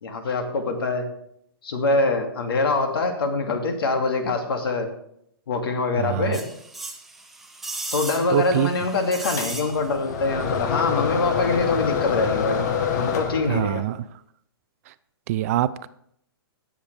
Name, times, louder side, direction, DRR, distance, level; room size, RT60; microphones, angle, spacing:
voice 1, 0.0-1.1 1.6-4.9 5.5-6.5 7.9-12.6 12.9-13.8, left 3 dB, 70° left, 5 dB, 2.4 m, -24 dB
voice 2, 6.0-6.4 8.3-8.7 13.5-14.0 15.3-15.9, right 14 dB, 40° right, 15 dB, 0.4 m, -24 dB
sound 1, 6.3-10.1 10.4-10.5, right 2 dB, ahead, 0.9 m, -36 dB
sound 2, 9.4-13.9, left 7 dB, 45° left, 1.3 m, -26 dB
18.5 x 7.3 x 3.4 m, 0.71 s
hypercardioid pair, 150°, 13 cm